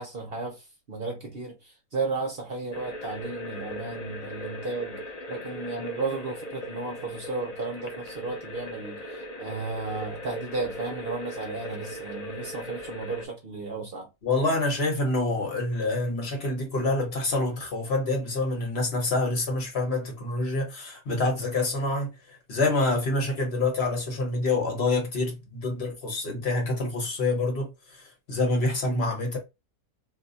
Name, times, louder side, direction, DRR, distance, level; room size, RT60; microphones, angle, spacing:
voice 1, 0.0-5.0 5.3-14.1, right 3 dB, 50° right, 0.7 m, -34 dB
sound 1, 2.7-13.2, equal, 60° left, 0.4 m, -39 dB
voice 2, 14.2-22.1 22.5-27.7 28.3-29.4, left 2 dB, 45° left, 1.3 m, -26 dB
2.8 x 2.2 x 3.9 m
omnidirectional pair, 1.7 m